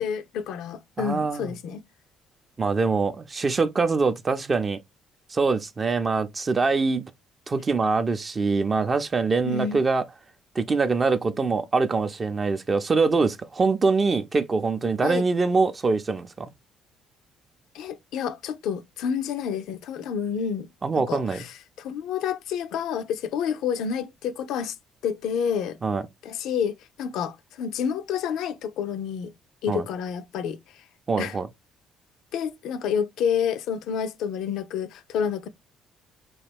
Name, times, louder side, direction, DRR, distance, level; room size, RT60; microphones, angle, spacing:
voice 1, 0.0-1.8 9.4-9.8 15.0-15.2 17.7-20.7 21.1-24.8 25.0-25.8 26.2-29.3 29.6-30.8 31.2-31.4 32.3-35.5, left 7 dB, 65° left, 0.3 m, -29 dB
voice 2, 1.0-1.5 2.6-4.8 5.3-7.0 7.5-10.0 10.6-16.5 20.8-21.5 25.8-26.0 29.7-29.8 31.1-31.5, right 4 dB, 35° right, 0.5 m, -24 dB
3.1 x 2.3 x 3.4 m
hypercardioid pair, 50°, 0 cm